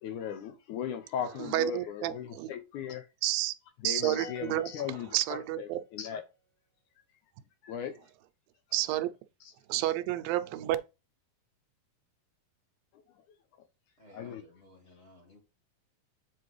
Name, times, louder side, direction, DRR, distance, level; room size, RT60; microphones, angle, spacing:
voice 1, 0.0-3.1 3.8-6.2 7.6-8.0 9.4-9.5 12.9-13.0 14.1-14.4, left 8 dB, 75° left, 2.0 m, -37 dB
voice 2, 1.4-2.5 3.2-3.5 3.8-4.7 5.1-5.8 8.7-9.1 9.7-10.8, right 15 dB, 90° right, 2.4 m, -30 dB
sound 1, 4.2-5.9, left 4 dB, 60° left, 1.4 m, -49 dB
voice 3, 14.0-15.4, equal, 35° left, 1.1 m, -56 dB
7.9 x 4.5 x 3.1 m
omnidirectional pair, 4.0 m